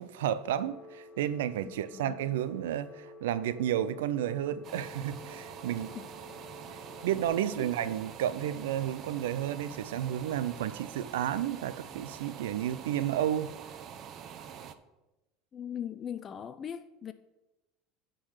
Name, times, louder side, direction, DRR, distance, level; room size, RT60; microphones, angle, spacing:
voice 1, 0.0-6.0 6.7-13.5, right 11 dB, 85° right, 0.4 m, -32 dB
Telephone, 0.5-7.3, left 2 dB, 10° left, 1.5 m, -51 dB
voice 2, 1.6-2.2 5.9-6.0 7.6-7.7 15.5-17.1, left 8 dB, 35° left, 0.4 m, -40 dB
sound 1, 4.6-14.7, right 8 dB, 50° right, 0.7 m, -46 dB
10.0 x 3.9 x 6.4 m
supercardioid pair, 95°, 0 cm